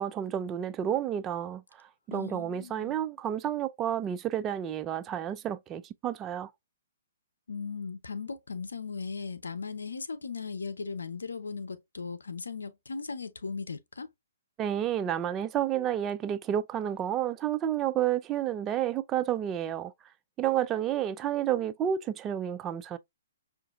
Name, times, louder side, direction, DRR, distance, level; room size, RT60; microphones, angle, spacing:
voice 1, 0.0-6.5 14.6-19.9 20.4-23.0, right 10 dB, 20° right, 0.4 m, -30 dB
voice 2, 2.1-2.9 7.5-14.1, left 5 dB, 85° left, 0.7 m, -37 dB
5.7 x 2.6 x 2.4 m
hypercardioid pair, 135°, 0 cm